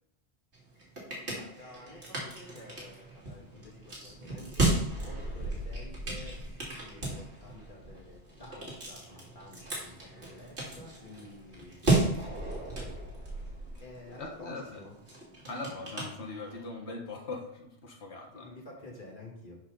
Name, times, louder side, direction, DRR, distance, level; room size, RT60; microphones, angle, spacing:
sound 1, 0.5-16.8, right 2 dB, 80° right, 2.8 m, -35 dB
voice 1, 1.3-6.4 6.8-12.9 13.8-14.9 18.3-19.6, left 2 dB, 50° left, -3 dB, 3.0 m, -50 dB
voice 2, 14.2-14.8 15.5-18.5, left 3 dB, 80° left, 0 dB, 1.8 m, -40 dB
11.0 x 5.7 x 4.0 m, 0.76 s
omnidirectional pair, 1.1 m